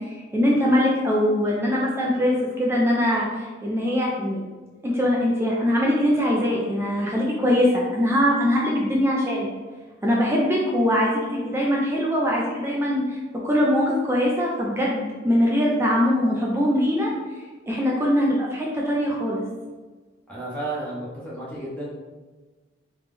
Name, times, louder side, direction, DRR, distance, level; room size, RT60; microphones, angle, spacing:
voice 1, 0.0-4.4 4.8-9.5 10.0-17.1 17.7-19.4, equal, 15° right, -4 dB, 0.4 m, -22 dB
voice 2, 20.3-21.9, right 2 dB, 5° left, -8 dB, 0.8 m, -32 dB
3.4 x 3.1 x 3.3 m, 1.3 s
head